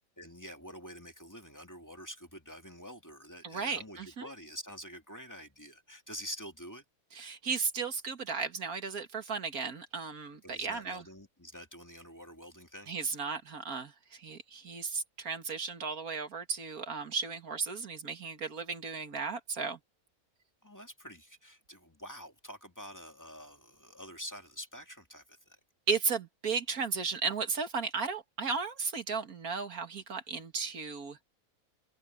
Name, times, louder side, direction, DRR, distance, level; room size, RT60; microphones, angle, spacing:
voice 1, 0.2-6.8 10.4-12.9 20.6-25.6, equal, 10° left, 2.2 m, -47 dB
voice 2, 3.4-4.3 7.1-11.0 12.9-19.8 25.9-31.2, right 5 dB, 85° right, 2.4 m, -35 dB
open air
omnidirectional pair, 1.5 m